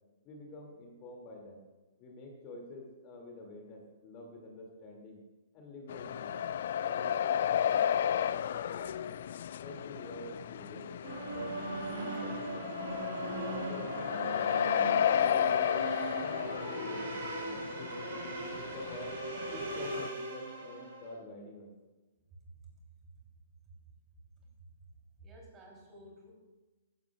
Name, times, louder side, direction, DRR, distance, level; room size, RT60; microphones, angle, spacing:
voice 1, 0.2-1.6 2.0-5.2 5.5-9.2 9.6-10.8 11.3-13.0 13.5-15.8 16.2-19.2 19.5-21.7, left 2 dB, 35° left, 0 dB, 2.7 m, -48 dB
sound 1, 5.9-20.1, left 9 dB, 55° left, 0.3 m, -33 dB
sound 2, 11.0-21.1, right 2 dB, 60° right, 3.8 m, -39 dB
voice 2, 22.3-22.8 23.0-23.2 23.7-23.8 24.4-24.7 25.2-26.3, right 2 dB, 20° right, -1 dB, 3.7 m, -54 dB
15.5 x 12.0 x 2.5 m, 1.2 s
figure-of-eight pair, 115°, 0 cm